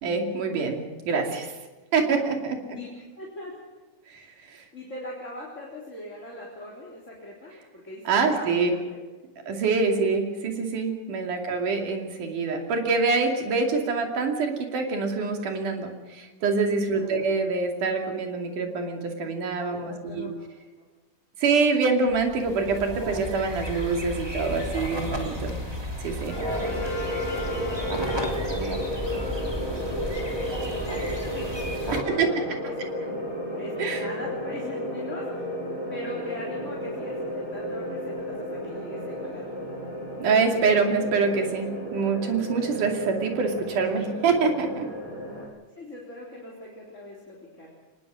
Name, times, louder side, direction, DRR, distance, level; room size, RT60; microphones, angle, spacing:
voice 1, 0.0-0.8 1.1-1.5 1.9-2.6 4.1-4.6 8.1-8.7 9.5-20.3 21.4-25.6 26.0-26.4 32.1-32.3 33.8-34.0 40.2-44.9, right 4 dB, 85° right, 3 dB, 4.2 m, -25 dB
voice 2, 3.2-3.6 4.1-9.0 16.9-17.3 19.7-20.3 20.8-20.9 27.4-31.4 31.8-32.9 33.5-35.5 35.9-39.6 45.7-47.7, left 1 dB, 25° left, -4 dB, 3.8 m, -41 dB
sound 1, 22.1-32.0, equal, 10° right, 2.5 m, -33 dB
Brass instrument, 26.3-28.9, left 2 dB, 55° left, 6.3 m, -39 dB
sound 2, 26.4-45.5, equal, 40° right, 6.0 m, -33 dB
24.0 x 20.5 x 6.3 m, 1.3 s
omnidirectional pair, 3.5 m